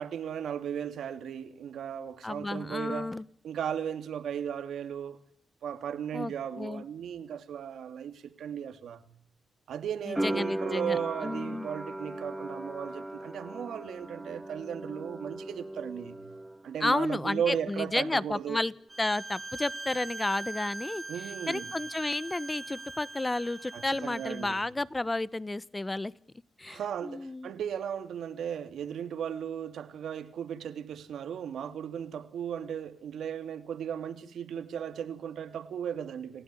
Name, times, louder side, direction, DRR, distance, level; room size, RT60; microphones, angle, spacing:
voice 1, 0.0-3.1 3.4-5.2 5.6-9.1 9.7-16.2 16.6-18.6 21.1-21.7 23.7-24.6 26.7-36.4, right 8 dB, 80° right, 2.7 m, -36 dB
voice 2, 2.2-3.2 6.1-6.8 10.0-11.7 16.8-18.7 19.0-21.0 21.5-26.1 26.6-27.5, left 2 dB, 20° left, 1.1 m, -32 dB
sound 1, 10.2-17.0 17.2-18.1, right 1 dB, 5° right, 2.9 m, -38 dB
Bowed string instrument, 18.9-24.7, right 2 dB, 20° right, 2.4 m, -42 dB
29.0 x 16.0 x 10.0 m
cardioid pair, 85°, 0 cm